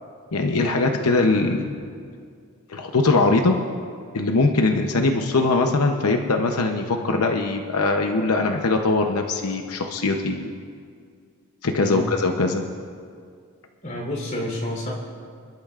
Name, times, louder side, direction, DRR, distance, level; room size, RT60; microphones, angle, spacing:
voice 1, 0.3-1.7 2.7-3.6 4.1-10.5 11.6-12.6, left 3 dB, 90° left, 3 dB, 0.8 m, -21 dB
voice 2, 13.8-14.9, left 1 dB, 35° left, -3 dB, 3.6 m, -29 dB
28.0 x 12.0 x 2.5 m, 2.2 s
head